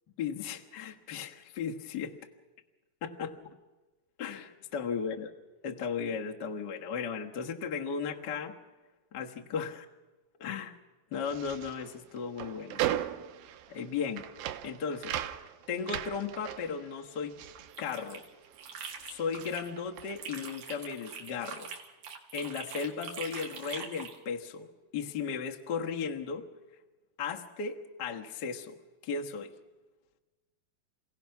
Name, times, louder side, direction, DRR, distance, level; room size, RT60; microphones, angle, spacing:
voice 1, 0.2-2.1 3.0-3.5 4.2-5.3 5.6-8.6 9.1-9.9 10.4-10.8 11.1-12.8 13.7-14.2 14.6-15.2 15.7-17.3 17.8-18.2 19.0-21.7 22.3-24.7 24.9-26.4 27.2-28.8 29.0-29.5, left 6 dB, 80° left, 1 dB, 0.9 m, -36 dB
sound 1, 11.1-18.6 18.9-20.4, right 12 dB, 80° right, 2.5 m, -38 dB
sound 2, 17.5-19.7 20.0-24.2, right 6 dB, 60° right, 3.3 m, -43 dB
28.5 x 16.5 x 5.9 m, 1.2 s
omnidirectional pair, 4.2 m